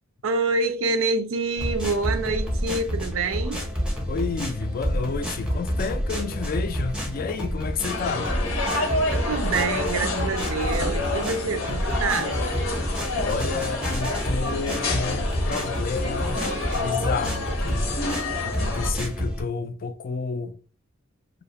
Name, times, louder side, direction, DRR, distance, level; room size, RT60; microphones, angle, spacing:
voice 1, 0.2-3.7 8.8-12.4, right 3 dB, 75° right, 0.4 m, -27 dB
sound 1, 1.6-19.4, equal, 5° right, 0.6 m, -29 dB
voice 2, 4.1-8.3 13.2-16.4 16.8-17.9 18.4-20.5, left 5 dB, 45° left, 0.3 m, -30 dB
sound 2, 7.9-18.9, left 3 dB, 85° left, 0.7 m, -29 dB
2.4 x 2.0 x 2.8 m
head